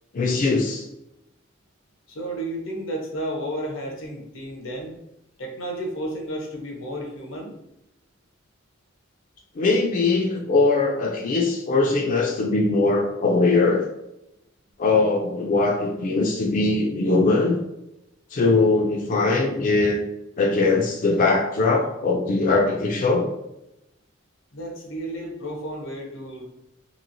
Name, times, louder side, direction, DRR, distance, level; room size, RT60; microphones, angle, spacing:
voice 1, 0.1-0.8 9.6-13.8 14.8-17.5 18.3-20.0 20.4-23.3, left 3 dB, 45° left, 1 dB, 0.4 m, -21 dB
voice 2, 2.1-4.9 5.4-7.6 24.5-26.4, right 1 dB, 85° left, 2 dB, 0.7 m, -32 dB
3.0 x 2.8 x 2.6 m, 0.87 s
head